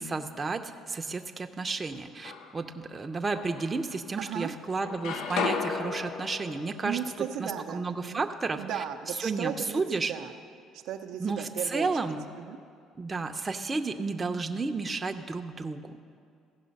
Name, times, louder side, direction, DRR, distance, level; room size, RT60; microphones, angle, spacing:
voice 1, 0.0-7.0 7.4-8.8 9.2-10.1 11.2-12.3 13.0-16.0, right 3 dB, 25° right, 6 dB, 0.6 m, -32 dB
sound 1, 1.9-2.8 3.3-4.4 4.6-8.6, left 4 dB, 75° left, 0.6 m, -36 dB
voice 2, 4.2-4.5 6.8-8.2 8.6-10.3 10.7-11.9 12.4-12.6, right 9 dB, 75° right, 4 dB, 0.5 m, -36 dB
15.5 x 5.5 x 5.3 m, 2.3 s
supercardioid pair, 75°, 0 cm